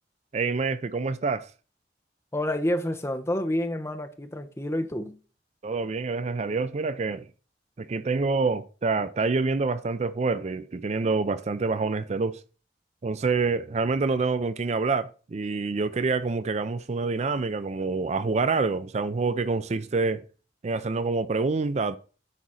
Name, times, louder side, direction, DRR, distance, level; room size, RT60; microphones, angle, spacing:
voice 1, 0.3-1.5 5.6-7.2 7.8-12.4 13.0-20.2 20.6-22.0, right 4 dB, 40° right, 0.4 m, -27 dB
voice 2, 2.3-5.2, left 1 dB, 15° left, 0.9 m, -28 dB
9.9 x 4.1 x 6.2 m
head